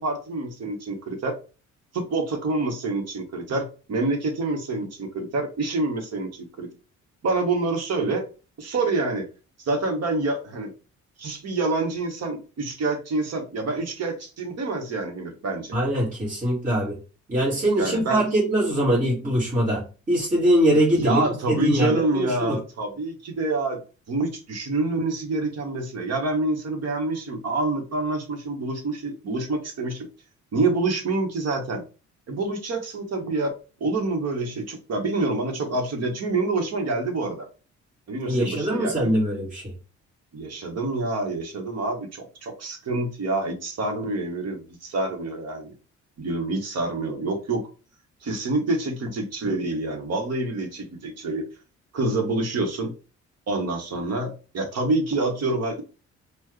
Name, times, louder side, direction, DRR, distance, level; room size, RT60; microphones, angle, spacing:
voice 1, 0.0-1.3 1.9-6.7 7.2-8.2 8.6-9.3 9.6-10.7 11.2-15.8 17.8-18.2 20.9-23.8 24.1-30.1 30.5-31.8 32.3-33.5 33.8-37.5 38.1-39.2 40.3-45.7 46.2-47.6 48.2-51.4 51.9-52.9 53.5-55.8, right 2 dB, 55° right, 3 dB, 1.4 m, -27 dB
voice 2, 15.7-17.0 17.3-22.6 38.3-39.7, right 1 dB, 25° right, -7 dB, 1.9 m, -22 dB
4.5 x 2.5 x 3.2 m, 0.34 s
cardioid pair, 90°, 30 cm